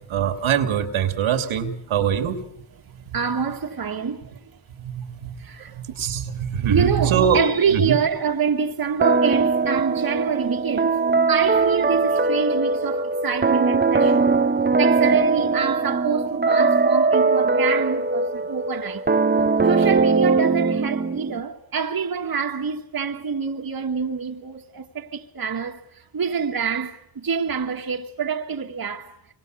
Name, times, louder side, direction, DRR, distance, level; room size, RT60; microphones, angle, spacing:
voice 1, 0.1-2.4 3.1-3.2 4.8-5.3 5.7-7.4 7.7-8.0, right 8 dB, 85° right, 2.8 m, -23 dB
voice 2, 3.1-4.4 5.4-5.8 6.7-14.3 14.8-19.0 19.6-29.3, right 6 dB, 45° right, 2.1 m, -26 dB
sound 1, 9.0-21.4, right 4 dB, 20° right, 1.1 m, -20 dB
27.0 x 25.5 x 6.5 m
cardioid pair, 70°, 47 cm